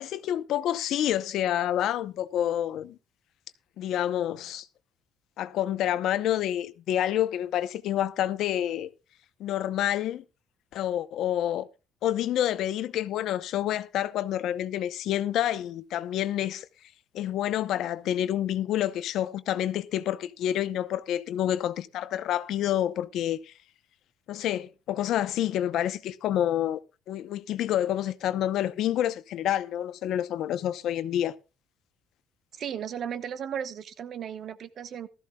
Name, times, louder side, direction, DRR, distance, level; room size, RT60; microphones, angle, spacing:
voice 1, 0.0-3.0 3.8-4.7 5.4-8.9 9.4-10.2 10.7-11.7 12.0-16.7 17.1-23.5 24.3-26.8 27.1-31.4, left 11 dB, 70° left, 0.7 m, -28 dB
voice 2, 32.5-35.1, right 8 dB, 50° right, 1.1 m, -35 dB
16.0 x 13.5 x 2.3 m
cardioid pair, 115°, 0 cm